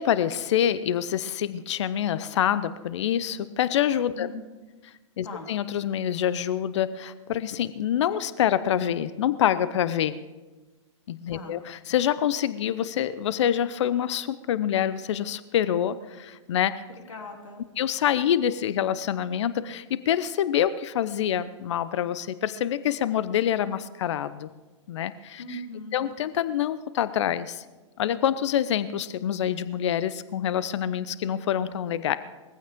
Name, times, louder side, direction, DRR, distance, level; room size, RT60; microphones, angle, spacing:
voice 1, 0.0-4.3 5.2-10.2 11.1-16.8 17.8-24.5 24.9-25.4 25.9-27.6 28.0-32.2, left 10 dB, 65° left, 15 dB, 0.7 m, -26 dB
voice 2, 4.1-4.5 5.2-5.5 11.3-11.6 17.1-17.7 25.4-26.0, left 2 dB, 80° left, 1 dB, 3.2 m, -39 dB
20.0 x 15.0 x 3.6 m, 1.2 s
hypercardioid pair, 115°, 16 cm